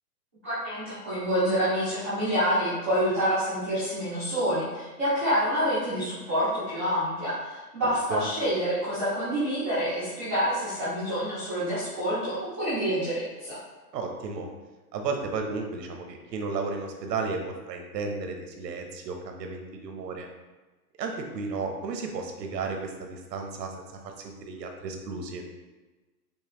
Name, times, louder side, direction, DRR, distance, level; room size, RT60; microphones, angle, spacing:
voice 1, 0.4-13.6, equal, 10° right, -16 dB, 0.4 m, -27 dB
voice 2, 13.9-14.5 14.9-20.3 21.0-23.7 24.0-25.4, right 4 dB, 75° right, 3 dB, 0.9 m, -33 dB
5.4 x 2.1 x 3.0 m, 1.2 s
hypercardioid pair, 150°, 50 cm